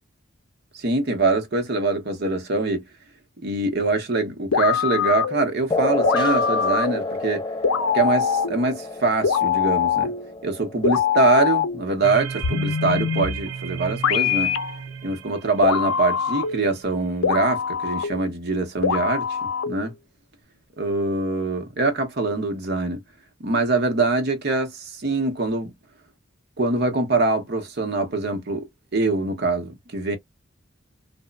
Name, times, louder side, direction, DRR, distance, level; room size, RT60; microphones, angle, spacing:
voice 1, 0.7-2.8 3.4-7.4 7.9-10.1 10.4-14.5 15.0-19.9 20.8-23.0 23.4-25.7 26.6-28.7 28.9-30.2, right 3 dB, 55° right, 0.8 m, -23 dB
sound 1, 4.5-5.5 6.0-7.1 7.6-8.7 9.2-10.3 10.8-11.9 12.4-13.5 14.0-14.8 15.6-16.7 17.2-18.3 18.8-19.9, left 7 dB, 90° left, 0.4 m, -23 dB
sound 2, 5.7-12.7, left 3 dB, 20° left, 0.3 m, -30 dB
sound 3, 12.0-16.9, right 7 dB, 85° right, 0.5 m, -35 dB
2.9 x 2.1 x 2.2 m
head